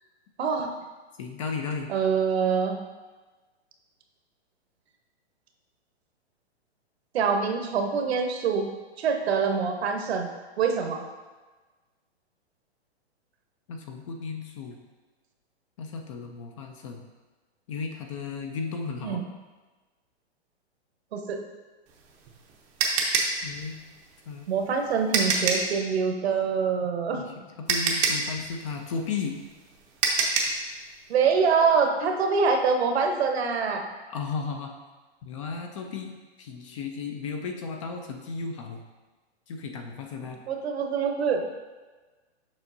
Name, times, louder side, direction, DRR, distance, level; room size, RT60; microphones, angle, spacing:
voice 1, 0.4-0.7 1.9-2.8 7.1-8.7 9.0-10.3 10.6-11.0 19.0-19.2 21.1-21.4 24.5-27.2 31.1-33.8 40.5-41.5, right 5 dB, 70° right, 4 dB, 1.0 m, -25 dB
voice 2, 1.2-1.9 13.7-14.7 15.8-17.0 17.7-19.3 23.4-23.8 24.3-24.5 27.1-29.4 34.1-34.7 35.2-36.1 36.4-38.8 39.5-40.4, left 5 dB, 30° left, 4 dB, 0.4 m, -34 dB
sound 1, 21.9-25.8 27.2-27.3 27.7-30.6, right 4 dB, 25° right, 0.6 m, -26 dB
7.1 x 5.1 x 2.7 m, 1.3 s
hypercardioid pair, 145°, 33 cm